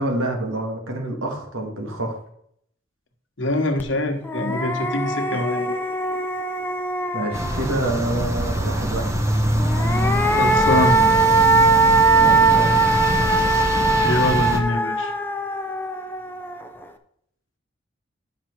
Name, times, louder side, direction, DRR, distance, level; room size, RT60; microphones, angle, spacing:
voice 1, 0.0-2.2 7.1-9.1 12.2-12.8, right 1 dB, 90° right, 3 dB, 1.7 m, -27 dB
voice 2, 3.4-5.8 10.4-11.0 14.0-15.1, left 1 dB, 65° left, 4 dB, 1.3 m, -24 dB
sound 1, 3.8-3.9 4.2-7.9 9.6-16.8, right 3 dB, 10° left, 0.6 m, -20 dB
sound 2, 7.3-14.6, equal, 15° right, 0.9 m, -24 dB
10.5 x 5.9 x 4.6 m, 0.69 s
head